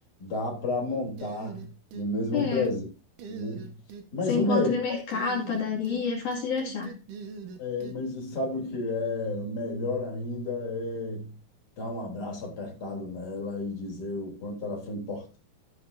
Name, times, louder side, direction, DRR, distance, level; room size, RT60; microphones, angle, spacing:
voice 1, 0.2-1.7 1.9-2.8 3.3-3.7 4.1-5.0 7.6-11.3 11.8-15.4, left 2 dB, 30° left, 3.9 m, -31 dB
sound 1, 1.2-2.1 2.4-2.8 3.2-4.0 5.1-6.0 6.3-8.0, right 5 dB, 65° right, 2.8 m, -42 dB
voice 2, 2.3-2.7 4.3-7.0, left 6 dB, 60° left, 3.8 m, -28 dB
14.0 x 9.9 x 2.7 m
omnidirectional pair, 4.0 m